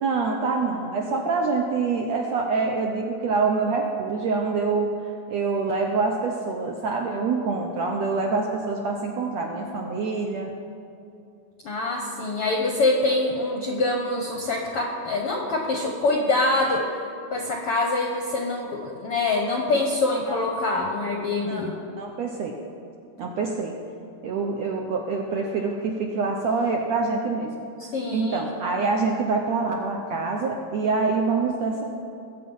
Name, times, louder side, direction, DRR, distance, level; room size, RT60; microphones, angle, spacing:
voice 1, 0.0-4.9 5.3-10.5 20.3-20.4 21.5-21.7 22.0-22.5 23.2-23.7 24.2-27.6 28.1-31.8, right 4 dB, 70° right, 1 dB, 1.6 m, -25 dB
voice 2, 11.6-16.8 17.3-21.7 27.9-28.5, left 2 dB, 70° left, 1 dB, 1.4 m, -25 dB
21.0 x 8.4 x 5.5 m, 2.6 s
omnidirectional pair, 4.1 m